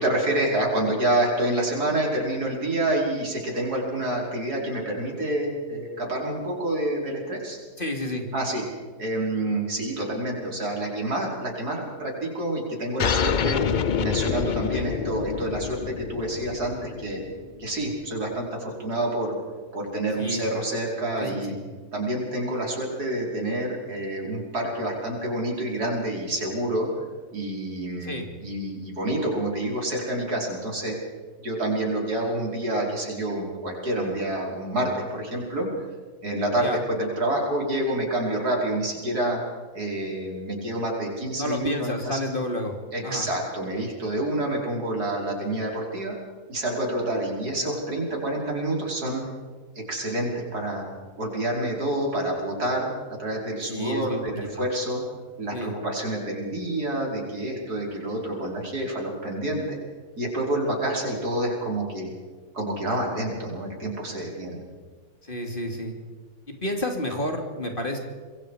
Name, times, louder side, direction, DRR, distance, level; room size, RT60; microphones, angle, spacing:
voice 1, 0.0-7.6 8.3-8.6 9.0-13.6 14.0-17.2 17.6-19.4 19.7-21.6 21.9-26.9 27.3-31.0 31.4-35.7 36.2-39.4 39.7-42.2 42.9-46.2 46.5-49.2 49.8-50.9 51.2-52.9 53.2-55.0 55.4-59.8 60.2-62.1 62.5-64.6, right 1 dB, 75° right, -1 dB, 5.8 m, -28 dB
voice 2, 7.8-8.3 14.7-14.8 20.2-20.4 21.2-21.6 28.0-28.2 36.6-36.8 41.4-42.8 43.0-43.3 53.7-54.2 54.6-54.7 55.5-55.8 65.2-66.0 66.5-68.0, left 1 dB, 35° left, 3 dB, 2.9 m, -30 dB
sound 1, 13.0-18.1, left 7 dB, 50° left, 0.5 m, -27 dB
27.0 x 22.5 x 5.1 m, 1.5 s
omnidirectional pair, 1.7 m